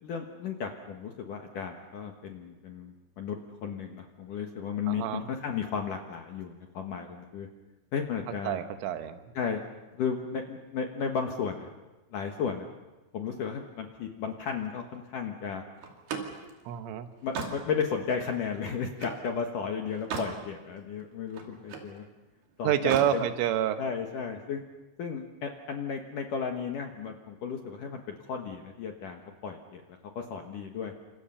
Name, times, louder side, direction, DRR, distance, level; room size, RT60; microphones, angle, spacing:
voice 1, 0.0-7.5 7.9-8.6 9.3-9.6 10.0-11.7 12.1-12.7 13.1-15.6 17.2-22.0 22.6-23.2 23.8-24.6 25.0-29.8 30.2-30.9, left 6 dB, 65° left, 3 dB, 2.2 m, -34 dB
voice 2, 4.9-5.2 8.5-9.2 16.7-17.1 22.6-23.8, right 10 dB, 85° right, 8 dB, 3.8 m, -28 dB
Slam, 15.8-19.3 19.7-20.4 20.8-21.9 22.7-23.2, right 5 dB, 55° right, 4.2 m, -38 dB
29.0 x 26.5 x 5.7 m, 1.1 s
omnidirectional pair, 5.6 m